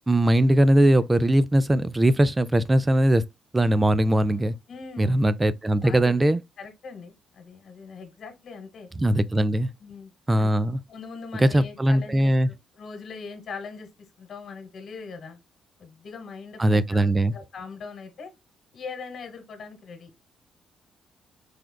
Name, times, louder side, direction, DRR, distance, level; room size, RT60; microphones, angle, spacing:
voice 1, 0.1-3.2 3.5-4.6 5.0-6.4 9.0-9.7 10.3-10.8 11.4-12.5 16.6-17.3, right 1 dB, 15° right, 0.3 m, -20 dB
voice 2, 4.7-5.2 5.8-6.3 6.6-8.9 9.8-10.1 10.4-10.5 10.9-13.9 14.2-15.4 15.8-18.3 18.7-20.1, left 5 dB, 60° left, 1.3 m, -41 dB
4.9 x 2.3 x 2.2 m
cardioid pair, 90°, 0 cm